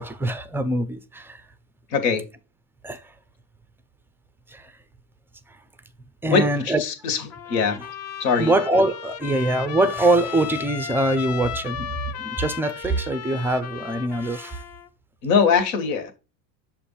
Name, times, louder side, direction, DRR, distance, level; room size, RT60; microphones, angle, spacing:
voice 1, 0.0-1.4 2.8-3.0 4.5-4.7 6.2-6.8 8.4-14.6, right 2 dB, 5° right, 0.4 m, -23 dB
voice 2, 1.9-2.2 6.2-7.2 7.5-7.8 8.2-8.5 15.2-16.1, left 5 dB, 70° left, 1.8 m, -22 dB
Trumpet, 7.3-14.9, left 9 dB, 30° left, 0.7 m, -35 dB
6.6 x 2.6 x 5.6 m
supercardioid pair, 100°, 49 cm